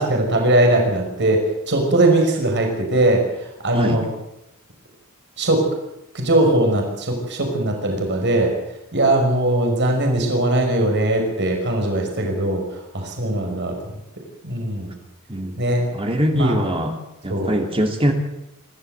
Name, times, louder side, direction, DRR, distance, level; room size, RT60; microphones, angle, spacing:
voice 1, 0.0-3.2 3.6-4.1 5.4-5.6 6.1-8.5 8.9-12.6 12.9-13.7 14.4-14.9 15.6-15.8 16.3-16.6 17.3-17.5, right 1 dB, 55° right, 2 dB, 5.6 m, -20 dB
voice 2, 15.3-15.6 15.9-17.0 17.2-18.1, equal, 25° right, 3 dB, 2.7 m, -22 dB
27.0 x 13.0 x 8.1 m, 0.86 s
head